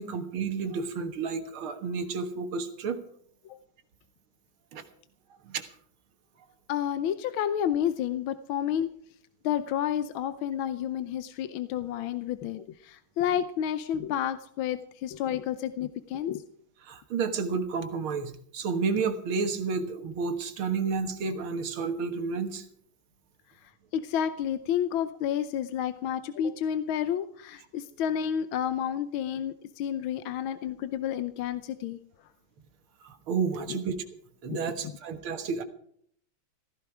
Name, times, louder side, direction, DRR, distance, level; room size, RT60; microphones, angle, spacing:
voice 1, 0.0-3.0 4.7-4.8 5.5-5.7 16.8-22.6 33.0-33.9 34.4-35.6, right 5 dB, 75° right, 8 dB, 2.3 m, -31 dB
voice 2, 6.7-8.9 9.4-16.5 23.9-32.0 33.7-33.8 34.5-34.9, left 9 dB, 75° left, 11 dB, 1.5 m, -30 dB
15.5 x 15.0 x 4.9 m, 0.65 s
omnidirectional pair, 2.3 m